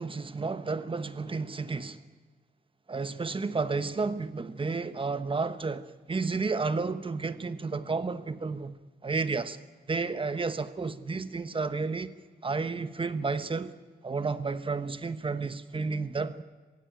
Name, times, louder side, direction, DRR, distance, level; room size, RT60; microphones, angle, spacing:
voice 1, 0.0-2.0 2.9-8.7 9.0-9.6 9.9-12.1 12.4-13.7 14.0-16.4, right 4 dB, 30° right, 1.1 m, -31 dB
21.5 x 16.5 x 9.0 m
wide cardioid pair, 105°, 16 cm